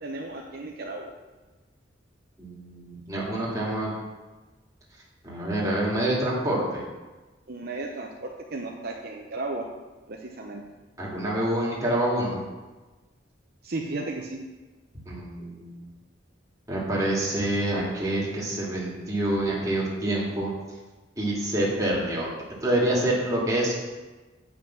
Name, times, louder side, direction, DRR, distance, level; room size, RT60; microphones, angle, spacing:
voice 1, 0.0-1.1 7.5-9.7 10.1-10.6 13.6-14.4, right 2 dB, 55° right, 1 dB, 0.8 m, -34 dB
voice 2, 2.4-3.9 5.2-6.8 11.0-12.4 15.1-15.8 16.7-20.5 21.2-22.3 22.6-23.8, right 1 dB, 20° right, -6 dB, 2.5 m, -27 dB
8.9 x 5.9 x 6.0 m, 1.2 s
head